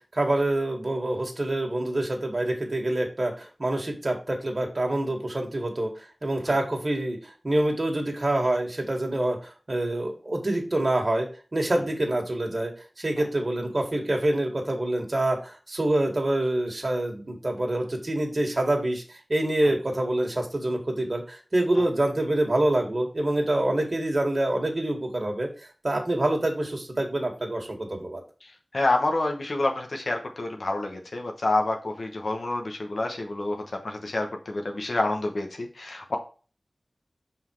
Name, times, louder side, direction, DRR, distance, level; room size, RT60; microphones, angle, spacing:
voice 1, 0.1-12.7 13.0-19.0 19.3-25.5 25.8-28.2, right 1 dB, 50° right, 1 dB, 1.9 m, -26 dB
voice 2, 28.4-36.2, left 2 dB, 75° left, 2 dB, 1.1 m, -28 dB
5.8 x 4.4 x 4.6 m, 0.36 s
wide cardioid pair, 60°, 0 cm